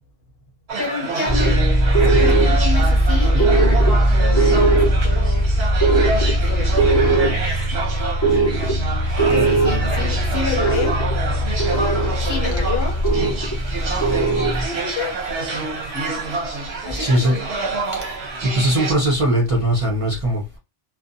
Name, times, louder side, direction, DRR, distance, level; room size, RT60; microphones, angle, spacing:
sound 1, 0.7-18.9, right 3 dB, 70° right, 1.0 m, -27 dB
voice 1, 0.8-1.7 2.0-5.5 6.5-6.9 9.2-11.0 12.3-13.0 14.6-15.2 16.8-17.5 18.0-18.1, left 4 dB, 60° left, 0.8 m, -29 dB
sound 2, 1.3-14.7, right 1 dB, 20° left, 0.5 m, -18 dB
voice 2, 16.9-17.4 17.9-18.0 18.5-20.6, right 1 dB, 35° right, 0.7 m, -20 dB
2.5 x 2.2 x 2.5 m
omnidirectional pair, 1.1 m